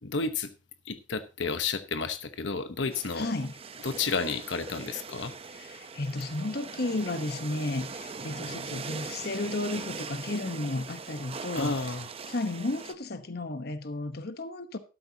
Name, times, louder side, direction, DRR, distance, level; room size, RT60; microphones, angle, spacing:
voice 1, 0.0-0.5 0.9-3.3 3.8-5.4 11.5-12.1, left 4 dB, 85° left, 1.0 m, -31 dB
sound 1, 2.9-12.9, right 5 dB, 30° right, 0.7 m, -41 dB
voice 2, 3.1-3.6 5.5-11.7 12.3-14.8, left 2 dB, 60° left, 1.1 m, -33 dB
13.0 x 12.0 x 2.8 m
head